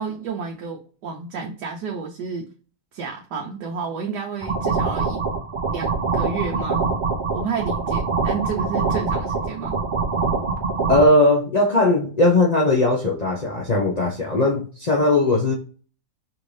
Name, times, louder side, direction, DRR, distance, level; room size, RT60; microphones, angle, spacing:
voice 1, 0.0-2.5 2.9-5.2 5.7-6.9 7.3-9.8 14.3-14.4, right 5 dB, 80° right, 0 dB, 1.3 m, -30 dB
sound 1, 4.4-11.1, right 4 dB, 60° right, 0.5 m, -24 dB
voice 2, 10.9-15.5, left 2 dB, 65° left, -2 dB, 0.4 m, -19 dB
5.2 x 2.6 x 3.2 m, 0.39 s
omnidirectional pair, 1.8 m